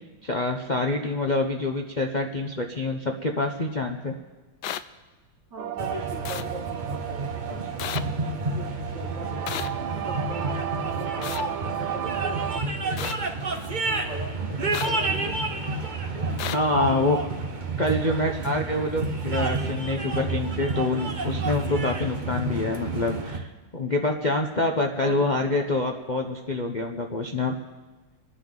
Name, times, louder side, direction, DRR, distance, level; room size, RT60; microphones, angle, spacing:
voice 1, 0.2-4.1 16.5-17.2 17.8-27.5, left 2 dB, 90° left, 2 dB, 0.4 m, -26 dB
sound 1, 4.6-4.8 6.3-6.4 7.8-8.0 9.5-9.7 11.2-11.4 13.0-13.1 14.7-14.9 16.4-16.6, left 11 dB, 75° left, 1.0 m, -31 dB
voice 2, 5.5-7.9 8.3-10.5 10.8-13.0 13.6-15.4 16.1-16.3 18.1-18.5 25.0-25.5, equal, 55° right, 0 dB, 2.8 m, -41 dB
sound 2, 5.6-12.6, right 11 dB, 75° right, 1.4 m, -34 dB
sound 3, 5.8-23.4, right 3 dB, 30° right, 0.9 m, -30 dB
29.0 x 10.0 x 3.9 m, 1.3 s
omnidirectional pair, 2.3 m